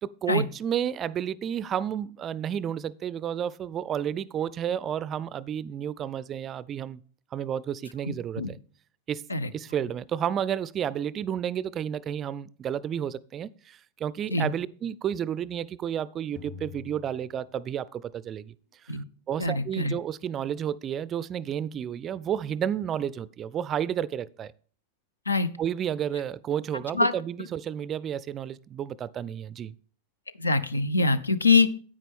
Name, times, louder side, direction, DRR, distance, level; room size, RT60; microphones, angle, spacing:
voice 1, 0.0-7.0 7.3-8.6 9.1-9.3 9.5-18.5 18.8-18.9 19.3-24.5 25.6-29.7, right 9 dB, 30° right, 0.4 m, -31 dB
sound 1, 16.4-18.1, left 7 dB, 45° left, 2.4 m, -46 dB
voice 2, 19.4-19.9 25.3-25.5 26.9-27.1 30.4-31.7, left 3 dB, 80° left, 0.7 m, -23 dB
10.0 x 8.9 x 3.5 m
figure-of-eight pair, 90°, 0 cm